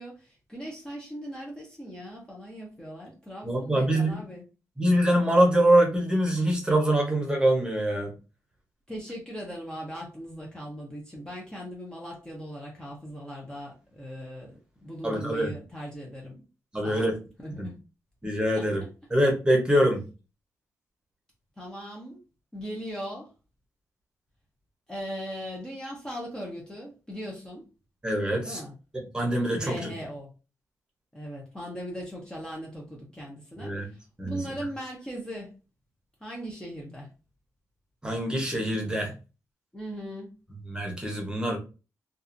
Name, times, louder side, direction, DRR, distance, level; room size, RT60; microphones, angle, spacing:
voice 1, 0.0-4.4 8.9-16.4 16.8-17.1 17.4-17.8 18.5-18.7 21.6-22.2 22.5-23.3 24.9-27.6 28.4-28.7 29.6-30.3 31.1-35.5 36.2-37.1 39.7-40.3, equal, 10° left, -2 dB, 0.7 m, -39 dB
voice 2, 3.4-4.2 4.8-8.1 15.0-15.5 16.7-17.2 17.6-17.7 18.2-18.8 19.1-20.0 28.0-28.6 28.9-29.9 33.6-33.9 34.2-34.4 38.0-39.1 40.7-41.6, right 1 dB, 15° right, 0 dB, 0.9 m, -24 dB
2.6 x 2.4 x 2.5 m, 0.31 s
cardioid pair, 100°, 6 cm